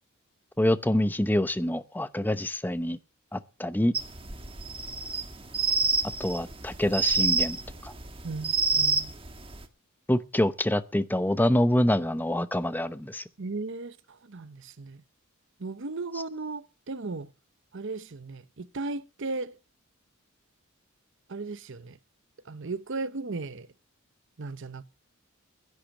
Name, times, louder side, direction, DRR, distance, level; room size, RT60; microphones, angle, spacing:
voice 1, 0.6-3.0 3.3-3.9 6.2-7.6 7.8-7.9 10.1-13.2, left 1 dB, 10° left, 0.8 m, -26 dB
sound 1, 3.9-9.6, right 4 dB, 25° right, 1.5 m, -28 dB
voice 2, 8.2-9.1 13.4-15.0 15.6-17.3 17.7-19.5 21.3-22.0 22.5-23.7 24.4-24.8, right 3 dB, 60° right, 0.8 m, -36 dB
11.5 x 10.5 x 7.2 m
head